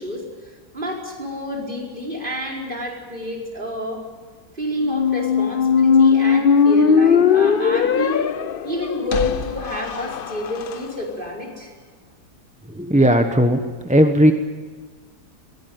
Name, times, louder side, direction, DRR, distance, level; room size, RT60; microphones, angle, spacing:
voice 1, 0.0-4.1 4.5-8.3 8.6-11.7, left 1 dB, 30° right, -1 dB, 5.1 m, -29 dB
Squeak, 4.8-10.8, left 6 dB, 50° left, 0.7 m, -18 dB
voice 2, 12.7-14.3, equal, 5° right, 6 dB, 1.0 m, -16 dB
22.0 x 17.0 x 9.3 m, 1.5 s
omnidirectional pair, 1.8 m